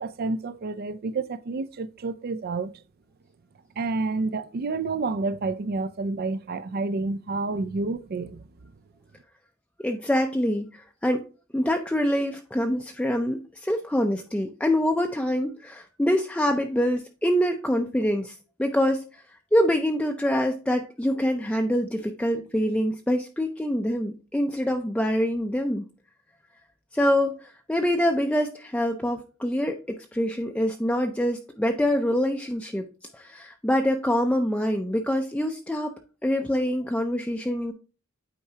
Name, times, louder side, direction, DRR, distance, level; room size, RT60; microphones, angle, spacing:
voice 1, 0.0-2.8 3.8-8.4, right 3 dB, 50° right, 0.4 m, -29 dB
voice 2, 9.8-11.2 11.5-19.2 19.5-25.9 26.9-32.8 33.1-35.9 36.2-37.7, equal, 5° left, 0.5 m, -25 dB
8.7 x 4.6 x 2.8 m
head